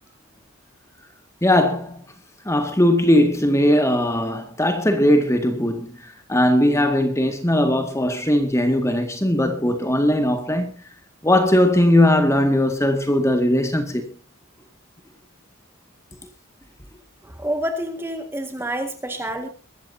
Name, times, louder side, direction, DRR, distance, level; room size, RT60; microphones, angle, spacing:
voice 1, 1.4-2.0 2.5-10.7 11.2-14.0, left 1 dB, 15° left, 1.9 m, -19 dB
voice 2, 17.2-19.5, right 1 dB, 10° right, 1.8 m, -28 dB
23.0 x 13.5 x 2.8 m
head